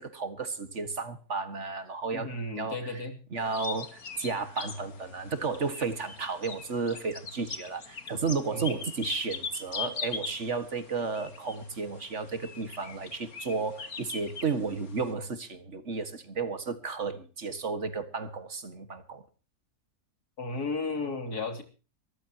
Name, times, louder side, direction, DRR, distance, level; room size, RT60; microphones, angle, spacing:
voice 1, 0.0-3.0 3.3-19.2, right 4 dB, 50° right, 11 dB, 2.1 m, -33 dB
voice 2, 2.1-3.2 8.5-8.8 20.4-21.6, left 3 dB, 90° left, 7 dB, 3.5 m, -34 dB
sound 1, 3.4-15.1, left 6 dB, 70° left, 2.4 m, -41 dB
23.0 x 15.0 x 2.9 m, 0.35 s
omnidirectional pair, 1.6 m